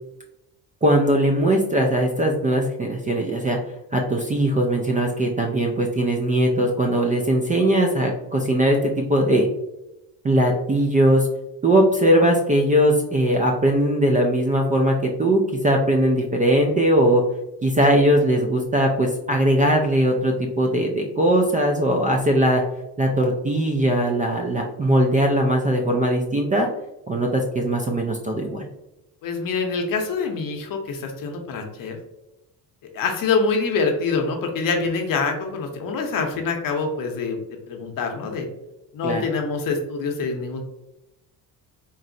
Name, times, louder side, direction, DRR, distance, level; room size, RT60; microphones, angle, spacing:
voice 1, 0.8-3.6 3.9-9.5 10.2-11.3 11.6-17.2 17.6-22.6 23.0-26.7 27.1-28.7 39.0-39.3, right 1 dB, 20° right, 1 dB, 0.3 m, -20 dB
voice 2, 29.2-32.0 32.9-37.4 37.7-38.5 38.9-40.7, left 4 dB, 55° left, 3 dB, 0.8 m, -25 dB
3.8 x 2.0 x 2.6 m, 0.91 s
cardioid pair, 95°, 40 cm